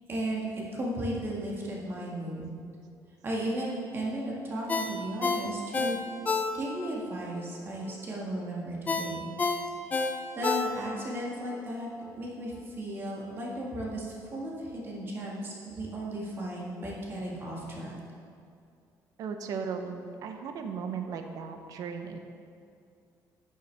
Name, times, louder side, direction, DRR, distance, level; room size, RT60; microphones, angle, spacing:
voice 1, 0.1-2.6 3.2-9.3 9.8-18.0, right 1 dB, 35° right, -3 dB, 1.7 m, -35 dB
Ringtone, 4.7-6.9 7.3-7.4 8.9-11.1 11.5-11.6, left 4 dB, 20° left, 0.5 m, -29 dB
voice 2, 19.2-22.2, right 6 dB, 60° right, 6 dB, 0.8 m, -36 dB
11.5 x 6.5 x 3.4 m, 2.4 s
cardioid pair, 150°, 7 cm